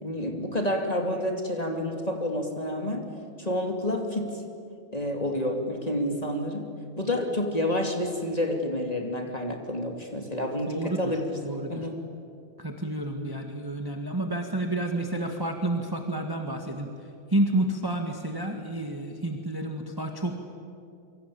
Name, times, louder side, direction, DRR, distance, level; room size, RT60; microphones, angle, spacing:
voice 1, 0.0-3.1 3.4-4.4 4.9-11.4 11.7-12.1, left 1 dB, 20° left, 3 dB, 2.6 m, -29 dB
voice 2, 10.7-11.1 11.4-11.9 12.6-16.9 17.3-20.4, right 1 dB, 10° right, 3 dB, 1.5 m, -30 dB
27.5 x 24.5 x 8.7 m, 2.5 s
omnidirectional pair, 2.3 m